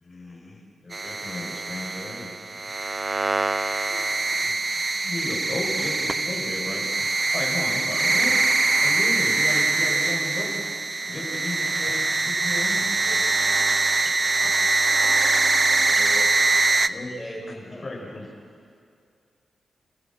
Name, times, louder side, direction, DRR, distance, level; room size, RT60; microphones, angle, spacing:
voice 1, 0.0-2.3 4.4-4.5 5.0-8.4 8.8-10.6 11.0-13.1 14.4-14.5 16.9-18.3, left 2 dB, 35° left, -1 dB, 6.5 m, -35 dB
sound 1, 0.9-16.9, right 3 dB, 30° right, 0.7 m, -23 dB
voice 2, 3.9-4.6 14.9-15.9, left 2 dB, 50° left, -3 dB, 4.5 m, -45 dB
voice 3, 13.1-13.6 15.8-16.3 17.2-17.4 17.7-17.9, left 1 dB, 15° left, -2 dB, 6.9 m, -39 dB
30.0 x 16.5 x 6.3 m, 2.3 s
cardioid pair, 75°, 0 cm